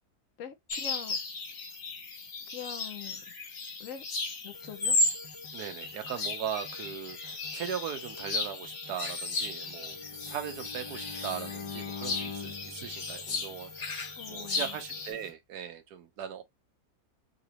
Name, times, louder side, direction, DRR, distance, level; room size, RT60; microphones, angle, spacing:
voice 1, 0.4-1.2 2.5-3.3 3.8-4.0 4.4-5.0 14.2-14.8, left 8 dB, 65° left, 0.8 m, -43 dB
sound 1, 0.7-15.1, left 2 dB, 50° left, 1.2 m, -35 dB
sound 2, 4.5-15.3, left 1 dB, 25° right, 0.6 m, -52 dB
voice 2, 5.5-13.9 14.3-16.4, right 9 dB, 85° right, 1.4 m, -39 dB
Bowed string instrument, 9.9-14.0, left 5 dB, 20° left, 1.0 m, -43 dB
4.0 x 3.0 x 2.8 m
omnidirectional pair, 1.6 m